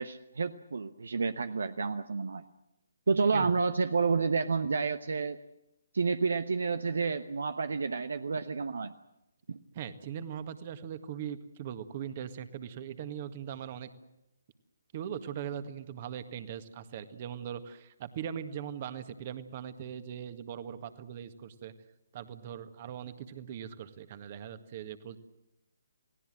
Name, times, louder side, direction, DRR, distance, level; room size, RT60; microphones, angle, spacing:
voice 1, 0.0-2.4 3.1-5.4 5.9-8.9 9.5-9.6, right 4 dB, 60° right, 12 dB, 1.0 m, -30 dB
voice 2, 9.7-13.9 14.9-21.7 22.1-25.2, right 9 dB, 35° right, 11 dB, 1.8 m, -40 dB
29.0 x 19.0 x 7.7 m, 0.91 s
figure-of-eight pair, 140°, 0 cm